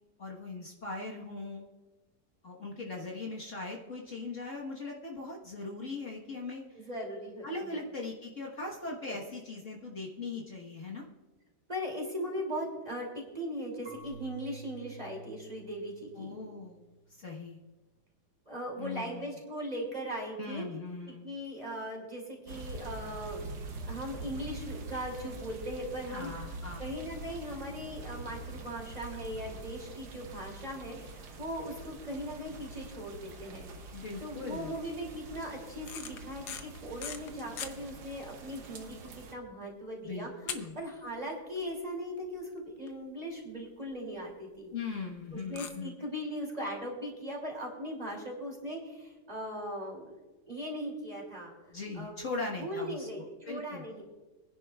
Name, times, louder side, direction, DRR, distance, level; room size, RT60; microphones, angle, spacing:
voice 1, 0.2-1.7 2.4-6.8 7.4-11.0 16.1-16.8 17.2-17.6 18.8-19.3 20.4-21.2 26.1-26.9 33.9-34.7 40.0-40.8 44.7-46.0 51.7-53.1 53.5-53.8, left 3 dB, 50° left, -2 dB, 1.7 m, -40 dB
voice 2, 6.7-7.8 9.1-9.2 11.7-16.4 18.5-20.7 21.1-23.5 23.8-26.3 26.8-40.3 40.7-44.7 45.3-50.2 50.5-51.5 51.9-52.1 52.6-54.0, equal, 25° right, -1 dB, 2.8 m, -39 dB
Marimba xylophone / Wood, 13.9-16.7, right 2 dB, 55° right, 3.6 m, -50 dB
sound 1, 22.5-39.3, right 2 dB, 80° right, 1.7 m, -45 dB
sound 2, 35.7-37.7 38.3-38.4 38.6-38.8 39.3-39.4 40.5-41.3 41.6-41.7 42.2-42.3 42.5-42.6 42.9-43.0 44.2-44.3 45.5-45.7, left 8 dB, 75° left, 1.4 m, -40 dB
24.5 x 10.5 x 2.3 m, 1.2 s
omnidirectional pair, 1.8 m